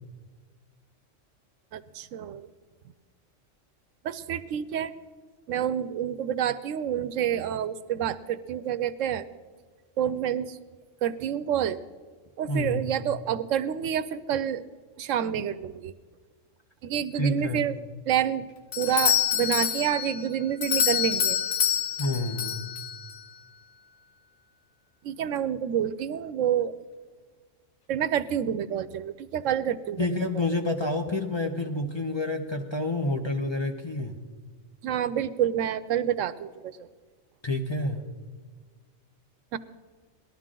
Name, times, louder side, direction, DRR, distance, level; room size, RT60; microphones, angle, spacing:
voice 1, 1.7-2.5 4.0-4.9 5.5-9.3 10.0-10.6 11.0-11.8 12.4-14.6 15.0-15.9 16.8-18.5 18.8-21.4 25.0-26.7 27.9-30.1 30.3-30.5 34.8-36.9 39.5-39.6, right 9 dB, 80° right, 14 dB, 1.0 m, -28 dB
voice 2, 12.5-12.9 17.2-17.6 22.0-22.6 30.0-34.2 37.4-38.0, left 2 dB, 25° left, 3 dB, 0.8 m, -28 dB
Doorbell, 18.7-23.2, left 9 dB, 85° left, 1.4 m, -27 dB
18.5 x 12.5 x 3.8 m, 1.5 s
omnidirectional pair, 1.3 m